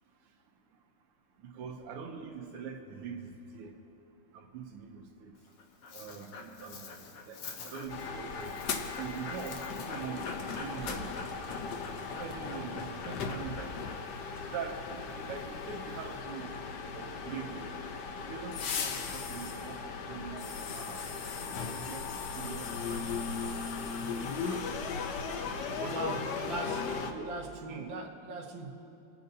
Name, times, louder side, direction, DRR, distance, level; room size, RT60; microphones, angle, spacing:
voice 1, 1.4-3.8 4.3-5.4 5.9-8.6 8.9-11.1 12.2-13.8 14.5-16.5 16.9-17.7 18.2-21.1 21.4-25.1 25.8-26.1 27.1-27.4 27.7-27.9, right 6 dB, 90° right, 1.7 m, -44 dB
Dog, 5.4-16.2, left 4 dB, 85° left, 1.9 m, -47 dB
sound 1, 7.9-27.1, left 5 dB, 65° left, 1.1 m, -37 dB
Car, 8.4-15.5, equal, 15° left, 1.4 m, -52 dB
voice 2, 25.6-28.7, right 2 dB, 65° right, 1.8 m, -40 dB
27.0 x 9.1 x 2.7 m
omnidirectional pair, 2.4 m